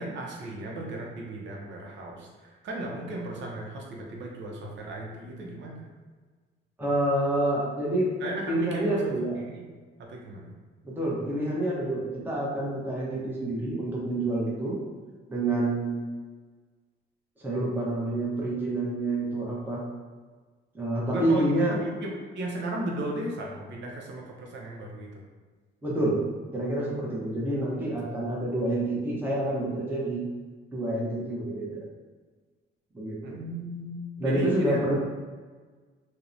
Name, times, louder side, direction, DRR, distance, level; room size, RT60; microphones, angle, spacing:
voice 1, 0.0-5.9 8.2-9.6 10.0-10.5 21.1-25.2 33.2-34.9, right 1 dB, 65° right, -1 dB, 0.6 m, -36 dB
voice 2, 6.8-8.1 8.5-9.4 10.8-14.8 15.3-16.1 17.4-19.8 20.7-21.7 25.8-26.2 26.5-30.2 30.7-31.9 32.9-33.4 34.2-35.0, right 1 dB, 10° right, -5 dB, 0.7 m, -28 dB
2.7 x 2.1 x 2.5 m, 1.4 s
cardioid pair, 90°, 20 cm